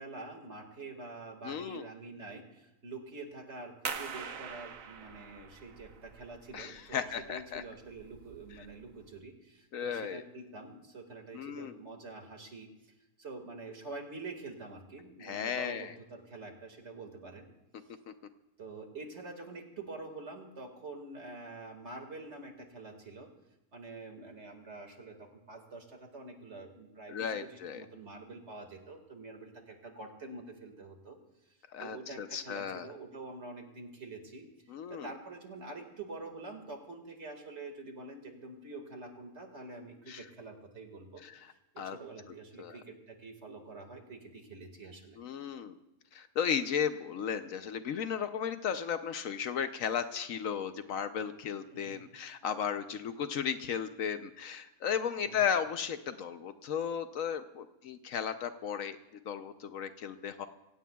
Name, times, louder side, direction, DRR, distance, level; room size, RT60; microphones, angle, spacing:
voice 1, 0.0-12.9 13.2-17.5 18.6-23.3 23.7-31.2 31.8-34.5 34.9-41.2 41.7-45.2 51.7-52.0 55.2-55.5, right 3 dB, 50° right, 4 dB, 2.1 m, -46 dB
voice 2, 1.4-1.9 6.5-7.6 9.7-10.2 11.3-11.8 15.2-15.9 18.1-18.2 27.1-27.8 31.7-32.9 34.7-35.1 40.1-40.2 41.2-41.5 41.8-42.0 42.6-42.8 45.2-45.7 46.1-59.0 59.3-60.5, left 7 dB, 70° left, 10 dB, 1.0 m, -35 dB
sound 1, 3.9-9.2, right 6 dB, 65° right, 1.3 m, -44 dB
25.0 x 16.5 x 2.3 m, 0.95 s
omnidirectional pair, 1.6 m